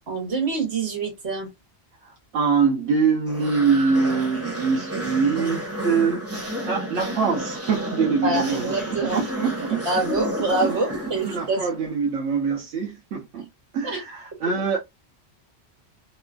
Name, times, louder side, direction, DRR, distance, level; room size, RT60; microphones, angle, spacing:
voice 1, 0.1-1.5 8.2-9.3 9.8-11.6 13.8-14.0, right 3 dB, 65° right, 1.4 m, -26 dB
voice 2, 2.0-6.3 6.7-9.9 10.6-13.5 13.7-14.8, right 5 dB, 85° right, 1.0 m, -24 dB
sound 1, 3.3-11.7, equal, 15° right, 0.7 m, -31 dB
3.0 x 2.3 x 2.3 m
omnidirectional pair, 1.2 m